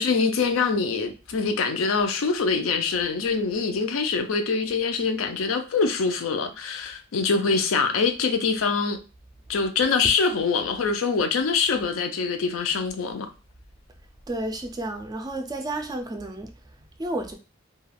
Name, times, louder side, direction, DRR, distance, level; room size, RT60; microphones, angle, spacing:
voice 1, 0.0-9.0 9.5-13.3, left 4 dB, 75° left, 0.4 m, -24 dB
voice 2, 14.3-16.5 17.0-17.3, right 1 dB, 20° right, 0.3 m, -31 dB
2.3 x 2.2 x 3.3 m
head